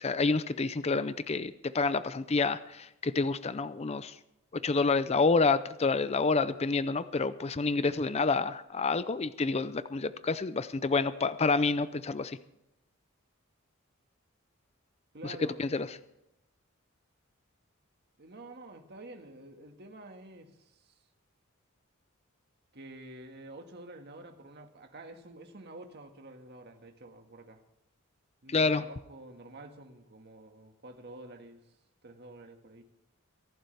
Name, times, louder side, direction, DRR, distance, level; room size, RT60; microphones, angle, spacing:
voice 1, 0.0-4.1 4.6-12.4 15.2-15.9 28.5-28.8, left 4 dB, 30° left, 14 dB, 0.5 m, -28 dB
voice 2, 15.1-15.6 18.2-21.0 22.7-27.6 28.4-31.6 32.0-32.8, right 2 dB, 55° right, 4 dB, 1.8 m, -49 dB
24.0 x 11.5 x 3.4 m, 0.86 s
head